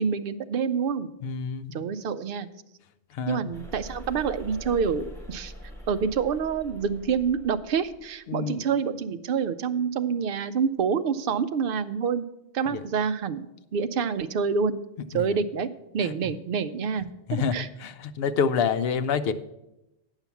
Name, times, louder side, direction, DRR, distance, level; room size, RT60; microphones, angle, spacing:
voice 1, 0.0-1.1 1.7-2.5 3.3-5.5 5.9-12.2 12.5-13.5 13.7-14.8 15.1-15.7 15.9-17.1 17.3-17.7, right 6 dB, 60° right, 11 dB, 0.7 m, -27 dB
voice 2, 1.2-1.8 3.1-3.5 8.3-8.7 12.7-12.8 15.1-15.3 16.0-16.1 17.3-19.3, left 6 dB, 65° left, 10 dB, 0.8 m, -27 dB
sound 1, 3.5-8.0, equal, ahead, 2.4 m, -43 dB
8.9 x 5.7 x 6.9 m, 0.91 s
omnidirectional pair, 1.1 m